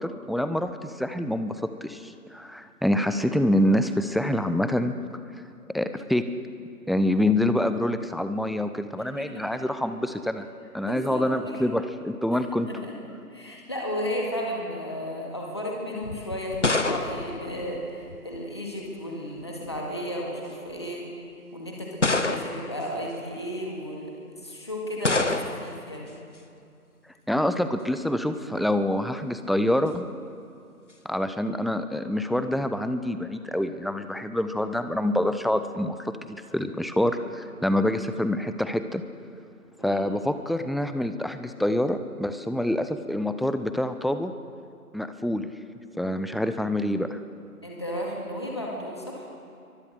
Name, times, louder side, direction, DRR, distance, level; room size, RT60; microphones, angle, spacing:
voice 1, 0.0-4.9 5.7-6.2 6.9-10.4 10.7-12.7 27.3-30.1 31.0-39.0 39.8-44.3 44.9-45.5 45.9-47.2, left 1 dB, ahead, 10 dB, 0.5 m, -26 dB
voice 2, 9.0-9.4 10.8-11.6 12.3-12.9 13.3-21.1 21.5-24.1 24.4-26.2 39.8-40.2 47.6-49.3, equal, 15° left, -2 dB, 2.0 m, -34 dB
sound 1, 16.0-18.4 19.4-19.9 20.7-20.8 22.0-22.8 25.0-25.8, left 2 dB, 50° left, 1.4 m, -27 dB
28.0 x 23.5 x 6.6 m, 2.5 s
figure-of-eight pair, 180°, 47 cm